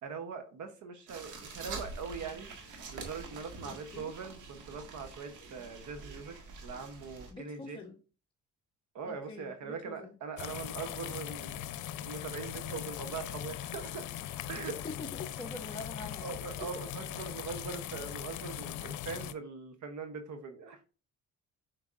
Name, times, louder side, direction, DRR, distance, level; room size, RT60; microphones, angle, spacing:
voice 1, 0.0-2.5 2.9-6.4 6.6-7.8 8.9-11.7 12.0-14.1 14.5-14.7 16.2-20.8, right 5 dB, 70° right, 1.1 m, -42 dB
sound 1, 1.1-7.3, right 3 dB, 85° right, 1.6 m, -46 dB
voice 2, 3.6-4.1 7.3-8.0 9.0-10.2 14.6-16.4, left 3 dB, 15° left, 1.0 m, -45 dB
sound 2, 10.4-19.3, left 11 dB, 80° left, 0.6 m, -40 dB
7.2 x 5.2 x 2.5 m
cardioid pair, 90°, 30 cm